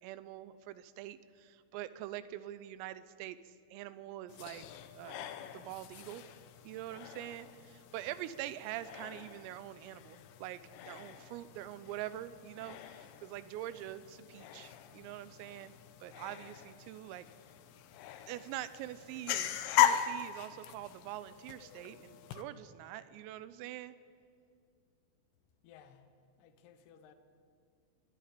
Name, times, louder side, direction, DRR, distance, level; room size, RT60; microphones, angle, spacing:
voice 1, 0.0-4.7 4.9-6.2 6.7-17.3 18.3-24.0, right 13 dB, 85° right, 14 dB, 3.4 m, -45 dB
sound 1, 4.3-22.4, left 11 dB, 85° left, 2.3 m, -39 dB
voice 2, 25.6-27.1, left 8 dB, 70° left, 9 dB, 2.6 m, -59 dB
25.5 x 21.5 x 5.1 m, 2.3 s
omnidirectional pair, 5.9 m